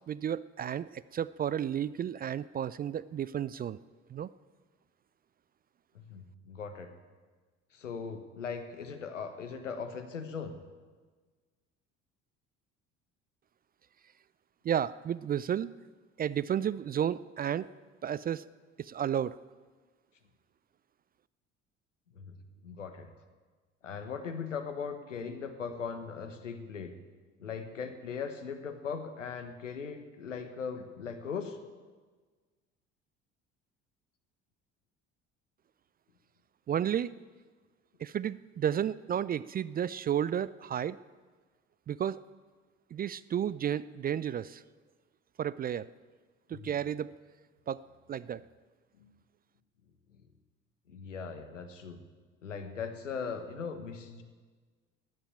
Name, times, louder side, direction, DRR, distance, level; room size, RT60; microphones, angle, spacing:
voice 1, 0.1-3.8 4.1-4.3 14.6-15.7 16.2-17.7 18.0-18.4 18.8-19.4 36.7-37.1 38.0-41.0 41.9-42.2 42.9-44.6 45.4-45.9 46.5-47.1 47.7-47.8 48.1-48.4, right 9 dB, 25° right, 19 dB, 0.4 m, -32 dB
voice 2, 5.9-6.9 7.7-10.6 22.1-22.3 22.6-23.1 23.8-26.9 27.4-31.6 46.5-46.8 49.0-49.1 50.9-52.0 52.4-54.2, left 6 dB, 85° left, 8 dB, 1.3 m, -39 dB
14.0 x 10.0 x 9.1 m, 1.4 s
figure-of-eight pair, 55°, 37 cm